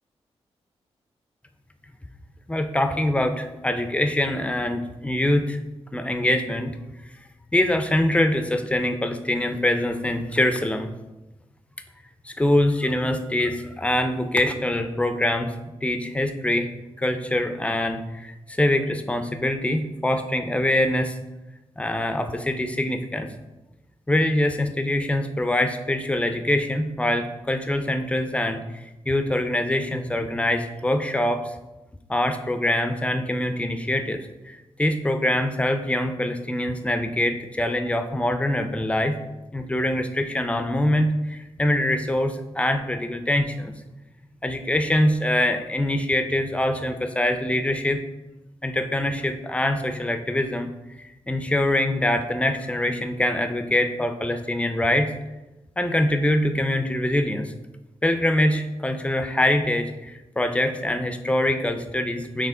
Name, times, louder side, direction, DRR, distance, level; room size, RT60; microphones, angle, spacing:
voice 1, 2.5-5.6 5.9-6.8 7.5-10.9 12.2-16.7 17.0-21.2 21.8-23.3 24.1-31.5 32.1-39.2 39.5-43.7 44.4-48.0 48.6-55.1 55.8-57.5 58.0-62.5, left 1 dB, 10° left, 7 dB, 0.4 m, -24 dB
4.8 x 2.9 x 3.7 m, 1.0 s
cardioid pair, 75°, 11 cm